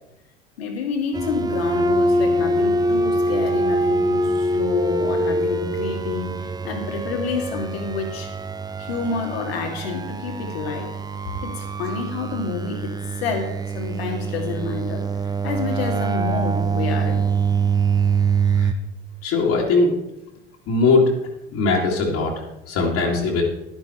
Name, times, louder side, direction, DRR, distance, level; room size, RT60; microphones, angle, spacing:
voice 1, 0.6-8.3 8.8-10.9 11.4-12.9 13.2-15.0 15.4-17.3, left 5 dB, 80° left, 3 dB, 2.3 m, -29 dB
sound 1, 1.1-18.7, right 3 dB, 15° right, 0.7 m, -24 dB
voice 2, 19.2-19.9 20.7-21.1 21.5-22.3 22.7-23.4, left 3 dB, 55° left, -3 dB, 2.4 m, -19 dB
10.5 x 10.5 x 4.4 m, 0.89 s
hypercardioid pair, 70°, 30 cm